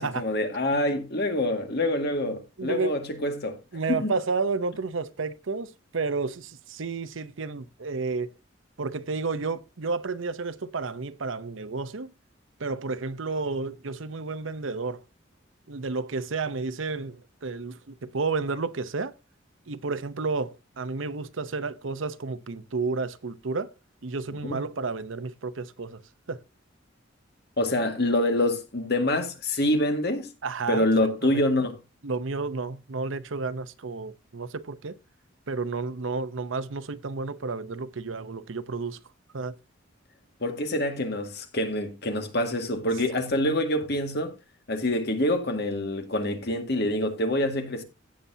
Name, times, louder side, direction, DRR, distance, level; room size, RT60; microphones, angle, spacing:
voice 1, 0.0-3.6 3.9-4.1 24.4-24.5 27.6-30.3 30.7-31.7 40.4-44.3 44.7-47.8, left 1 dB, 55° left, 1.9 m, -26 dB
voice 2, 2.6-2.9 3.7-8.3 8.8-12.1 12.6-15.0 15.7-19.1 19.7-23.7 24.0-26.0 26.3-26.4 30.4-30.9 31.3-31.4 32.0-34.9 35.5-39.0 39.3-39.6, right 4 dB, 75° right, 0.8 m, -31 dB
16.5 x 6.9 x 2.7 m
head